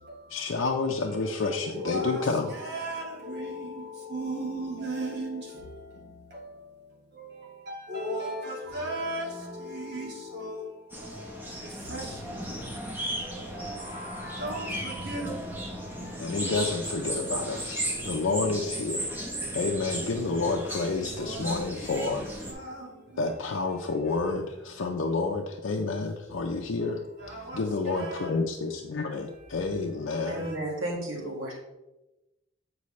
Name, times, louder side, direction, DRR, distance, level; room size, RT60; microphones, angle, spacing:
voice 1, 0.3-2.6 11.6-11.8 16.2-19.1 19.5-22.3 23.2-27.0 27.5-30.5, left 3 dB, 70° left, 0.6 m, -29 dB
voice 2, 1.8-2.2 2.7-5.7 6.3-6.6 7.1-7.4 7.7-10.7 11.0-11.3 11.8-12.3 13.4-16.4 21.2-21.6 22.5-22.9 27.3-27.6 27.9-28.3 30.3-30.5, right 1 dB, 55° right, 1.9 m, -36 dB
sound 1, 10.9-22.5, right 1 dB, 10° right, 0.9 m, -35 dB
voice 3, 30.2-31.6, right 1 dB, 85° right, 1.8 m, -33 dB
8.3 x 4.7 x 3.2 m
head